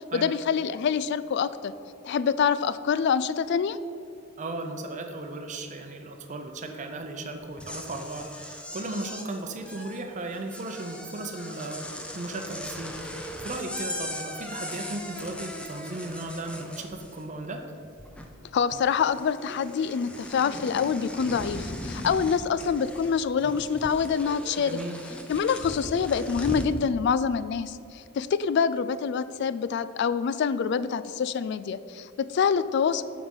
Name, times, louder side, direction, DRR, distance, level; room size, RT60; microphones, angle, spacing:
voice 1, 0.0-1.7 2.0-3.8 18.5-24.8 25.3-33.0, left 6 dB, 60° left, 15 dB, 0.3 m, -26 dB
voice 2, 4.4-17.6 24.6-25.0, right 2 dB, 40° right, 4 dB, 0.7 m, -36 dB
sound 1, 7.4-17.5 17.7-18.5 18.7-26.8, left 1 dB, 5° left, 0.6 m, -39 dB
7.1 x 5.0 x 5.4 m, 2.4 s
head